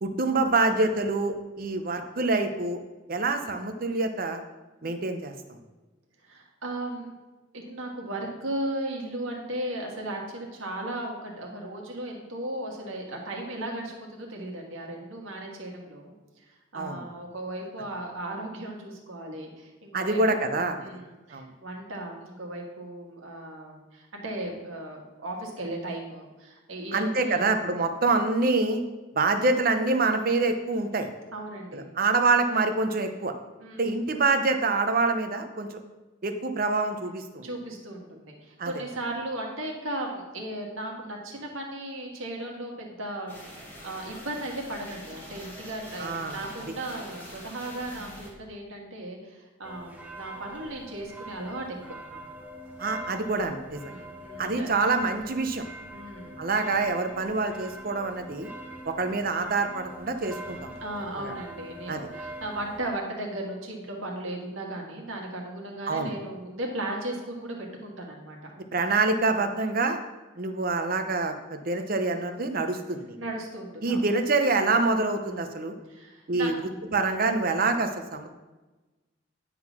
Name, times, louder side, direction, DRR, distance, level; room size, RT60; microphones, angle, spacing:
voice 1, 0.0-2.8 3.1-4.4 4.8-5.3 16.7-17.0 19.9-20.9 21.3-21.5 26.9-28.8 29.1-31.1 31.7-33.3 33.8-35.8 36.2-37.5 38.6-38.7 46.0-46.4 52.8-53.9 54.4-55.6 56.4-58.5 58.8-60.8 61.2-61.3 61.9-62.1 65.9-66.1 68.7-70.0 70.4-73.2 73.8-75.7 76.3-78.3, right 3 dB, 45° right, 7 dB, 0.7 m, -26 dB
voice 2, 6.2-7.1 7.5-16.1 16.7-27.5 31.3-31.9 33.6-33.9 37.4-52.2 53.1-53.4 53.8-54.7 55.9-56.4 60.8-68.5 73.2-74.0 75.9-76.6, right 1 dB, 85° right, 0 dB, 1.6 m, -36 dB
sound 1, 43.3-48.3, equal, 10° left, 1.7 m, -45 dB
sound 2, 49.6-62.9, right 1 dB, 10° right, 0.8 m, -43 dB
9.6 x 3.9 x 6.0 m, 1.2 s
head